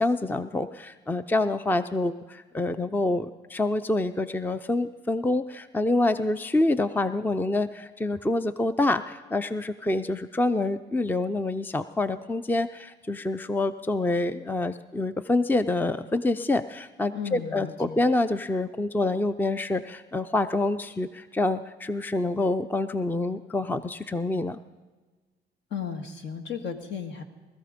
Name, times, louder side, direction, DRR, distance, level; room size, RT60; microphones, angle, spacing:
voice 1, 0.0-24.6, left 2 dB, 10° left, 12 dB, 0.5 m, -27 dB
voice 2, 17.1-18.0 25.7-27.2, left 7 dB, 65° left, 6 dB, 1.9 m, -35 dB
20.0 x 13.5 x 5.1 m, 1.3 s
cardioid pair, 90°, 20 cm